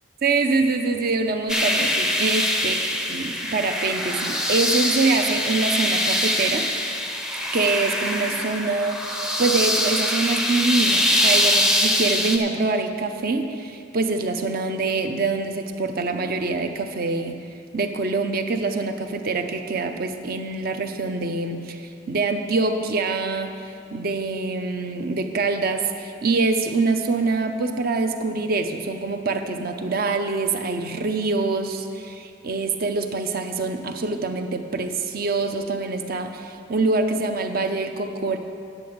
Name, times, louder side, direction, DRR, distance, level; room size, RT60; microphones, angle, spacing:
voice 1, 0.2-6.7 7.5-17.4 17.7-23.5 23.9-38.4, right 3 dB, 45° right, 7 dB, 0.6 m, -25 dB
sound 1, 1.5-12.4, left 1 dB, 5° right, 0.6 m, -23 dB
8.9 x 8.5 x 6.6 m, 2.5 s
head